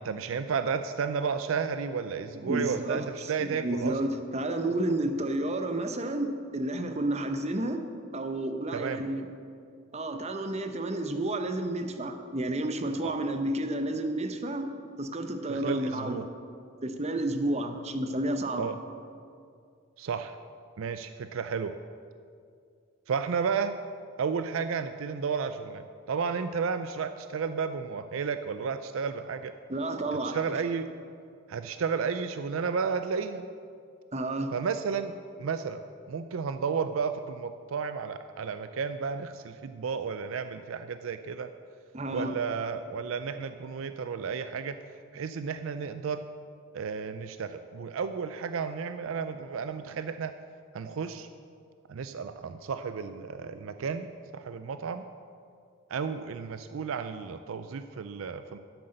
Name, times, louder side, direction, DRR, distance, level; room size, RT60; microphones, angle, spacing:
voice 1, 0.0-4.0 8.7-9.0 13.0-13.1 15.5-16.2 18.6-18.8 20.0-20.4 20.8-21.7 23.1-23.8 24.2-29.5 30.2-30.9 31.5-33.5 34.5-41.5 42.1-44.8 45.1-46.2 46.7-50.3 50.7-51.3 51.9-55.0 55.9-58.6, right 6 dB, 70° right, 10 dB, 0.4 m, -32 dB
voice 2, 2.4-7.8 8.1-9.3 9.9-14.7 15.0-16.2 16.8-18.7 29.7-30.6 34.1-34.5 41.9-42.3, right 1 dB, 30° right, 6 dB, 0.8 m, -31 dB
11.5 x 7.8 x 6.5 m, 2.3 s
head